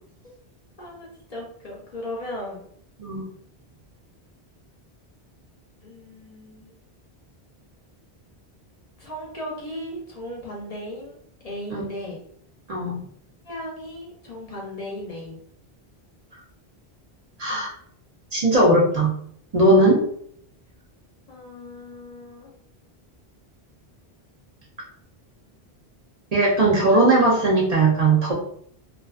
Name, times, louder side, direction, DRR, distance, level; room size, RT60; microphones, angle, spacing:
voice 1, 0.8-2.6 5.8-6.7 9.0-12.2 13.4-15.4 21.3-22.5, left 1 dB, 45° left, -3 dB, 0.6 m, -36 dB
voice 2, 12.7-13.0 17.4-17.7 18.3-19.1 19.5-20.0 26.3-28.3, right 2 dB, 45° right, -4 dB, 0.6 m, -18 dB
2.3 x 2.3 x 2.3 m, 0.64 s
omnidirectional pair, 1.1 m